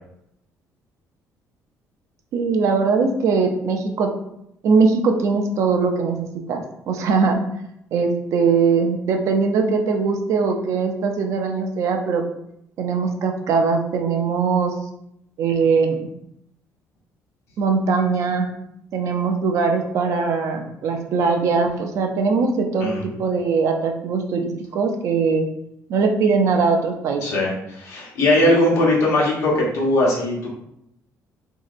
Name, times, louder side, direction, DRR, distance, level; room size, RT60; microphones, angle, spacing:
voice 1, 2.3-4.1 4.6-7.4 7.9-12.2 12.8-14.7 15.4-16.1 17.6-18.5 18.9-25.5 25.9-27.2, right 4 dB, 60° right, 4 dB, 0.5 m, -21 dB
voice 2, 27.2-30.5, left 1 dB, 55° left, -4 dB, 1.1 m, -19 dB
3.0 x 2.7 x 2.5 m, 0.77 s
cardioid pair, 145°, 6 cm